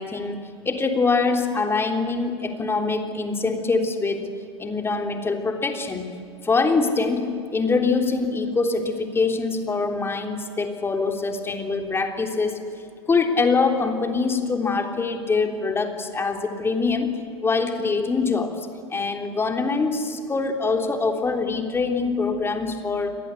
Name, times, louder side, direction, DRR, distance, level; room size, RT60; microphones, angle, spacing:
voice 1, 0.0-4.3 4.6-6.1 6.4-12.6 13.1-17.1 17.4-23.2, left 4 dB, 15° left, 4 dB, 3.3 m, -24 dB
30.0 x 22.5 x 8.3 m, 2.4 s
figure-of-eight pair, 95°, 16 cm